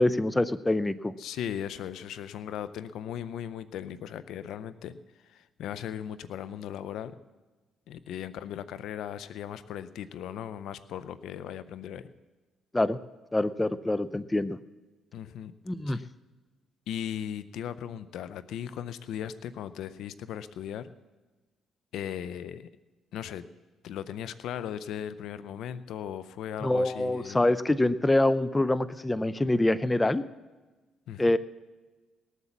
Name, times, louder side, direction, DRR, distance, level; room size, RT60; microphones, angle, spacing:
voice 1, 0.0-1.1 12.7-13.0 13.3-14.6 15.7-16.0 26.6-30.2 31.2-31.4, left 1 dB, 15° left, 16 dB, 0.5 m, -25 dB
voice 2, 1.2-5.0 5.3-7.1 7.9-12.1 15.1-15.5 15.9-16.1 16.9-20.9 21.9-22.7 23.1-23.4 23.8-27.4 31.1-31.4, left 9 dB, 75° left, 14 dB, 0.6 m, -37 dB
18.5 x 8.2 x 7.3 m, 1.3 s
cardioid pair, 80°, 0 cm